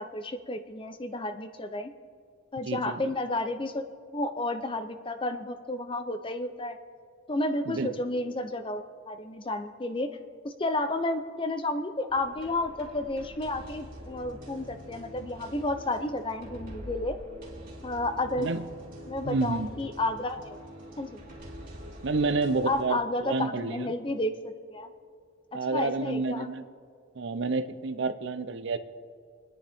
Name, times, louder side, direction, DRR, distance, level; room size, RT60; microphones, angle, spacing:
voice 1, 0.0-1.9 2.5-3.8 4.1-6.8 7.3-10.2 10.4-17.2 17.8-18.5 19.1-20.6 21.0-21.2 22.7-24.3 24.7-24.9 25.5-26.5, left 2 dB, 25° left, 9 dB, 0.6 m, -31 dB
voice 2, 2.7-3.0 7.7-7.9 18.4-18.6 19.2-19.7 22.0-23.9 25.5-26.6 27.2-28.8, right 3 dB, 55° right, 11 dB, 0.6 m, -29 dB
sound 1, 12.1-22.8, equal, 40° right, 2.7 m, -45 dB
29.5 x 10.0 x 3.5 m, 2.1 s
head